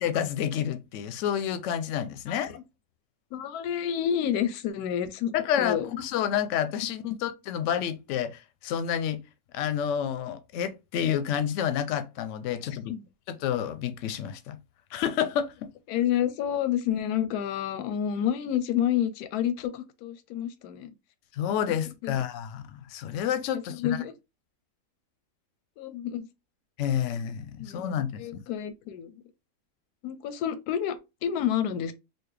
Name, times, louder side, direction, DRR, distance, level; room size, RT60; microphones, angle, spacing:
voice 1, 0.0-2.6 5.3-9.2 9.5-12.9 13.3-14.6 14.9-15.5 21.3-24.0 26.8-28.4, left 9 dB, 70° left, 0.8 m, -29 dB
voice 2, 3.3-5.9 12.9-13.0 15.9-20.9 22.0-22.1 23.7-24.1 25.8-26.3 27.6-27.8 28.2-29.2 30.0-31.9, left 10 dB, 90° left, 1.1 m, -29 dB
4.1 x 2.2 x 3.3 m
omnidirectional pair, 1.6 m